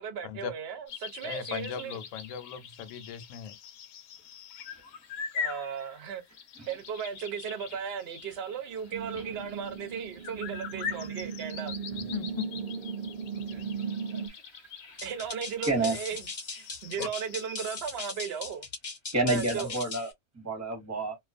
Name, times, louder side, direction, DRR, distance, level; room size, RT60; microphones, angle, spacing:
voice 1, 0.0-2.0 5.3-6.2 6.7-11.7 15.0-18.7 19.3-19.8, right 7 dB, 60° right, 0.7 m, -36 dB
sound 1, 0.9-17.6, left 6 dB, 90° left, 1.1 m, -43 dB
voice 2, 1.2-3.5 11.9-12.5 17.0-17.1, left 9 dB, 70° left, 0.9 m, -38 dB
sound 2, 8.9-14.3, right 6 dB, 85° right, 0.4 m, -37 dB
voice 3, 14.5-15.0 15.6-16.0 19.1-21.2, right 2 dB, 15° right, 0.8 m, -30 dB
sound 3, 15.0-20.1, left 3 dB, 40° left, 0.5 m, -39 dB
2.3 x 2.3 x 2.4 m
omnidirectional pair, 1.5 m